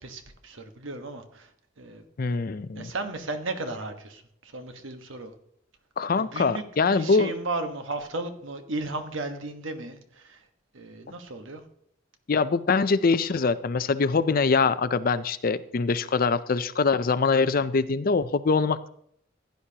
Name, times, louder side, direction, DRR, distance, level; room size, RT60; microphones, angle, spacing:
voice 1, 0.0-1.5 1.8-2.0 2.7-5.3 6.2-10.4 10.7-11.6, right 2 dB, 70° right, 7 dB, 1.3 m, -35 dB
voice 2, 2.2-2.9 6.0-7.3 12.3-18.9, left 4 dB, 45° left, 14 dB, 0.5 m, -23 dB
15.5 x 10.5 x 2.9 m, 0.68 s
head